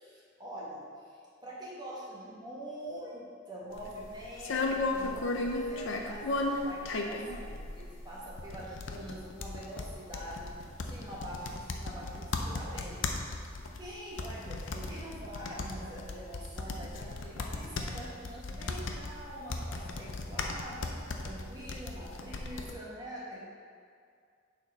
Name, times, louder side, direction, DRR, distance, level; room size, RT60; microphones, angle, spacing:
voice 1, 0.0-10.5 10.8-13.1 13.8-20.9 21.2-23.5, right 1 dB, 20° right, -5 dB, 1.1 m, -44 dB
sound 1, 3.7-22.7, left 2 dB, 65° left, 0.6 m, -36 dB
7.0 x 4.3 x 5.2 m, 2.3 s
head